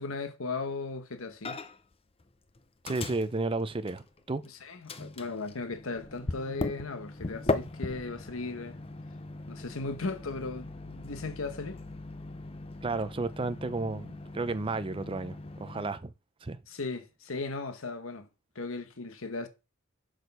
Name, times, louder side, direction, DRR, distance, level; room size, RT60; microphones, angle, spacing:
voice 1, 0.0-1.6 4.4-8.8 9.5-11.8 16.7-18.3 18.5-19.5, left 3 dB, 70° left, 1.1 m, -37 dB
Microwave oven, 1.4-1.9 2.2-4.5 4.9-15.9, left 2 dB, 25° left, 0.6 m, -39 dB
voice 2, 2.8-4.4 12.8-16.1 16.4-16.6, right 3 dB, 25° right, 0.5 m, -32 dB
6.4 x 6.3 x 5.3 m
head